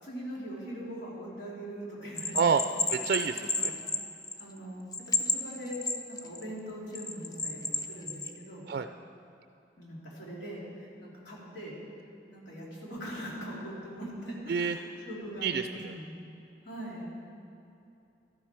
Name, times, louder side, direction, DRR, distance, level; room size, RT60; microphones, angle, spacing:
voice 1, 0.0-2.6 3.4-3.7 4.4-5.8 6.1-8.7 9.8-11.8 12.3-16.2 16.6-17.1, equal, 90° left, -5 dB, 3.4 m, -41 dB
Bell, 2.2-4.6 4.9-6.4 6.9-8.3, left 3 dB, 20° left, 0.6 m, -31 dB
voice 2, 2.9-3.7 8.7-8.9 14.5-14.8 15.4-15.9, right 6 dB, 60° right, 8 dB, 0.3 m, -28 dB
13.0 x 12.0 x 4.5 m, 2.7 s
head